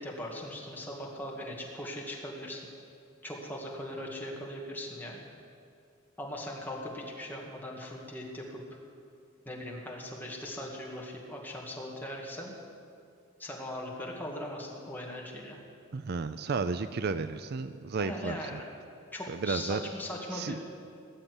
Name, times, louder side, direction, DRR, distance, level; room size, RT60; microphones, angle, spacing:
voice 1, 0.0-2.6 3.2-5.2 6.2-8.8 9.4-12.5 13.4-15.6 18.0-18.7 19.1-20.6, left 1 dB, 10° left, -2 dB, 2.3 m, -39 dB
voice 2, 15.9-18.6 19.3-19.8 20.3-20.6, right 4 dB, 50° right, 12 dB, 0.5 m, -33 dB
19.0 x 7.4 x 9.8 m, 2.4 s
head